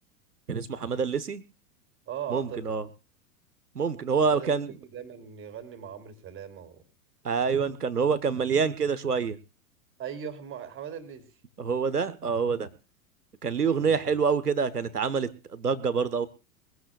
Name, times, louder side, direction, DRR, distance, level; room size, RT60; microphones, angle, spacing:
voice 1, 0.5-1.4 2.3-2.9 3.7-4.8 7.2-9.4 11.6-12.7 13.4-16.3, right 5 dB, 85° right, 15 dB, 1.3 m, -26 dB
voice 2, 2.1-2.6 4.2-4.6 4.9-6.8 10.0-11.2 13.8-14.2, right 8 dB, 25° right, 8 dB, 3.0 m, -39 dB
22.5 x 15.5 x 2.4 m, 0.33 s
figure-of-eight pair, 90°, 45 cm